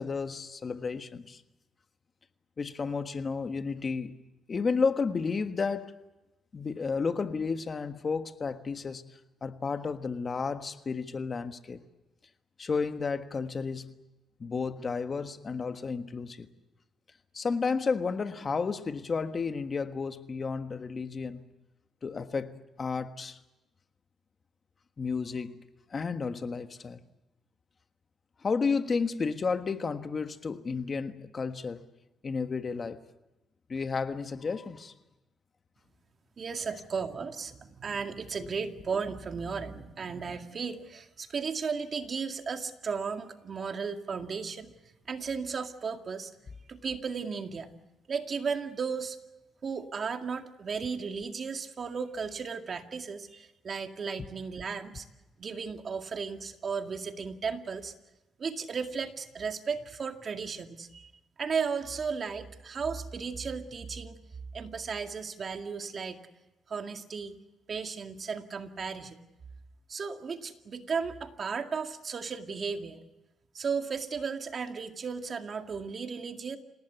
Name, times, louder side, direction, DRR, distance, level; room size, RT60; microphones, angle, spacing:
voice 1, 0.0-1.4 2.6-4.1 4.5-5.9 6.5-9.0 9.4-11.8 12.6-13.9 14.4-16.5 17.3-21.4 22.0-22.5 22.8-23.4 25.0-25.6 25.9-27.0 28.4-31.8 32.2-33.0 33.7-34.9 38.4-38.5, left 5 dB, 40° left, 1.4 m, -32 dB
voice 2, 36.4-44.7 45.1-46.3 46.7-47.7 48.1-49.2 49.6-55.1 55.4-57.9 58.4-61.1 61.4-64.2 64.5-66.2 66.7-67.4 67.7-69.2 69.9-73.0 73.5-76.6, right 5 dB, 45° right, 2.0 m, -35 dB
27.5 x 18.5 x 8.1 m
cardioid pair, 90°, 0 cm